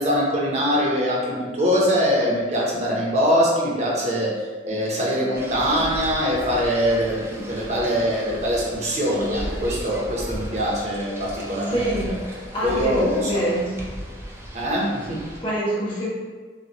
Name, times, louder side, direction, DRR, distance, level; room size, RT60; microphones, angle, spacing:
voice 1, 0.0-4.4 4.6-12.2 12.6-13.3 14.5-15.2, equal, 40° right, -3 dB, 0.9 m, -23 dB
sound 1, 5.4-15.4, equal, 15° right, 0.6 m, -35 dB
voice 2, 11.7-12.1 12.5-13.8 15.4-16.1, right 1 dB, 30° left, -7 dB, 1.2 m, -25 dB
5.9 x 2.4 x 2.9 m, 1.4 s
head